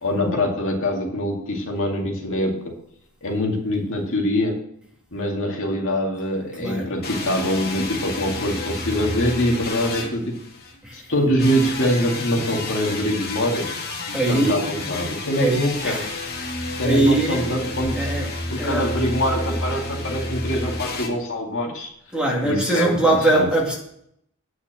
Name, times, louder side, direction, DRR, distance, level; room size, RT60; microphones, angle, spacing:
voice 1, 0.0-2.5 3.2-4.6 5.1-10.3 10.9-13.7 14.3-16.0 16.8-18.1 18.5-21.9 22.4-23.5, equal, 60° left, 2.2 m, -24 dB
voice 2, 6.6-6.9 10.8-11.0 14.1-14.7 15.4-16.1 16.8-17.4 18.0-18.3 18.6-18.9 22.1-23.8, right 2 dB, 5° right, 2.3 m, -21 dB
sound 1, 7.0-10.8 11.4-21.1, left 2 dB, 45° left, 1.7 m, -30 dB
9.5 x 6.2 x 7.4 m
head